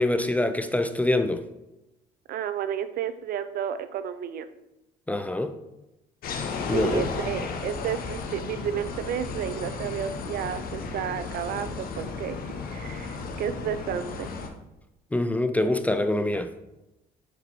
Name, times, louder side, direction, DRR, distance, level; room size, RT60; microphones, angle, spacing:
voice 1, 0.0-1.4 5.1-5.5 6.7-7.1 15.1-16.5, left 1 dB, 10° left, 0.4 m, -25 dB
voice 2, 2.3-4.5 6.7-12.4 12.7-14.3, right 9 dB, 60° right, 0.5 m, -32 dB
sound 1, 6.2-14.5, left 4 dB, 60° left, 0.9 m, -34 dB
6.9 x 4.0 x 4.5 m
cardioid pair, 110°, 17 cm